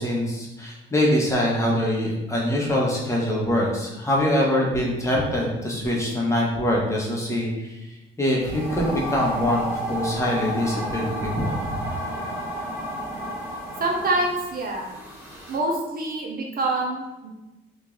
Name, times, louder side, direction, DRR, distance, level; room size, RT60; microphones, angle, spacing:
voice 1, 0.0-7.9 8.2-11.9, left 1 dB, 15° left, -4 dB, 1.0 m, -24 dB
sound 1, 8.4-15.6, equal, 10° right, 1.4 m, -32 dB
voice 2, 13.8-14.9 15.5-17.3, right 2 dB, 50° right, 0 dB, 0.7 m, -26 dB
3.1 x 2.7 x 3.7 m, 1.0 s
cardioid pair, 90°, 20 cm